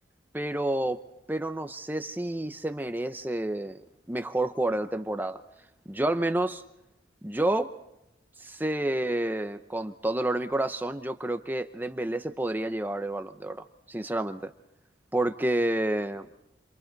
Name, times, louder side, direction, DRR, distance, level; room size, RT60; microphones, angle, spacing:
voice 1, 0.3-1.0 1.3-3.8 4.1-5.4 5.9-6.6 7.2-7.7 8.4-14.5 15.1-16.3, right 1 dB, 10° right, 8 dB, 0.7 m, -29 dB
28.5 x 27.5 x 4.0 m, 0.88 s
head